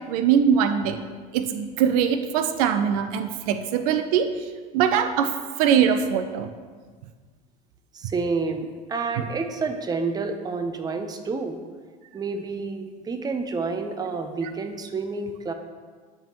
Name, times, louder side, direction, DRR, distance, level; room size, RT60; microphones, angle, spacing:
voice 1, 0.1-1.0 1.3-4.3 4.7-5.3 5.6-6.5 14.4-14.5, right 8 dB, 80° right, 9 dB, 0.4 m, -22 dB
voice 2, 7.9-11.6 12.1-15.5, right 4 dB, 20° right, 7 dB, 0.6 m, -29 dB
10.0 x 3.5 x 2.9 m, 1.5 s
supercardioid pair, 95°, 19 cm